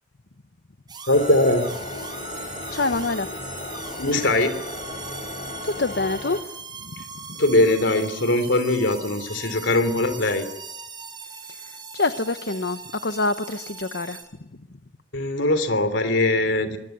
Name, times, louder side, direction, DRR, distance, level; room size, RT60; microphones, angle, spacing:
sound 1, 0.9-14.2, right 5 dB, 20° right, 6.7 m, -39 dB
voice 1, 1.1-1.7 4.0-4.5 7.3-10.5 15.1-16.8, left 2 dB, 75° left, 10 dB, 3.5 m, -21 dB
sound 2, 1.1-6.4, left 2 dB, 40° left, 4.0 m, -36 dB
voice 2, 2.3-3.3 5.0-5.2 5.6-6.4 6.8-6.9 7.3-7.4 11.5-11.6 11.9-14.2 14.5-14.6, left 3 dB, 60° left, 10 dB, 1.0 m, -26 dB
24.5 x 20.5 x 9.4 m, 0.88 s
head